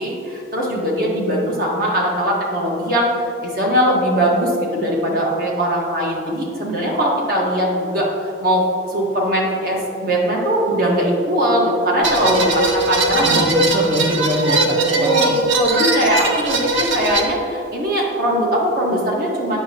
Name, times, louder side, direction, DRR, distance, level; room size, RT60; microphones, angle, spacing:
voice 1, 0.0-8.6 8.9-13.4 14.4-14.6 15.0-19.6, equal, 50° right, -3 dB, 1.4 m, -20 dB
sound 1, 12.0-17.2, right 2 dB, 75° right, 0.8 m, -20 dB
voice 2, 13.2-15.4, equal, 30° right, -3 dB, 0.5 m, -22 dB
8.8 x 6.1 x 2.8 m, 2.5 s
head